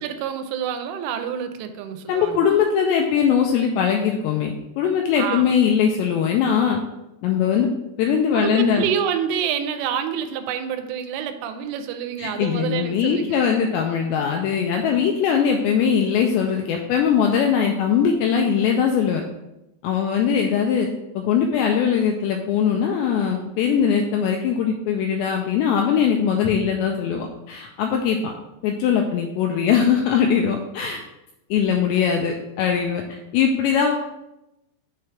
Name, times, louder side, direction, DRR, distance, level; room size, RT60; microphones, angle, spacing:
voice 1, 0.0-2.4 5.1-5.5 8.3-13.4, right 8 dB, 85° right, 8 dB, 3.1 m, -27 dB
voice 2, 2.1-6.8 7.2-7.7 8.0-8.9 12.2-19.2 19.8-20.9 21.2-28.3 28.6-31.0 31.5-33.9, left 7 dB, 85° left, 2 dB, 2.5 m, -21 dB
7.0 x 3.3 x 5.6 m, 0.91 s
omnidirectional pair, 5.5 m